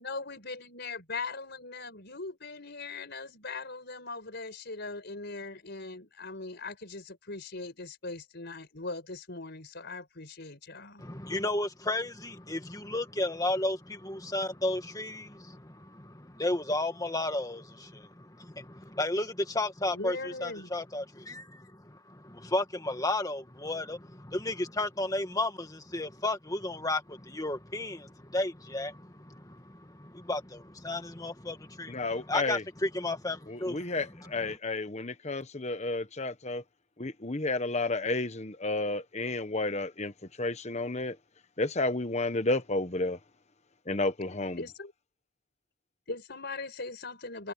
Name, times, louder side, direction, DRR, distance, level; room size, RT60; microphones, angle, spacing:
voice 1, 0.0-11.0 19.9-20.7 44.6-44.9 46.1-47.5, left 3 dB, 50° left, 5.5 m, -40 dB
voice 2, 11.0-33.7 34.4-34.6, left 2 dB, 15° left, 2.0 m, -33 dB
voice 3, 31.9-32.6 33.5-34.0 34.3-36.6 37.0-40.1 40.4-41.1 41.6-43.2 43.9-44.6, left 2 dB, 30° left, 1.2 m, -31 dB
head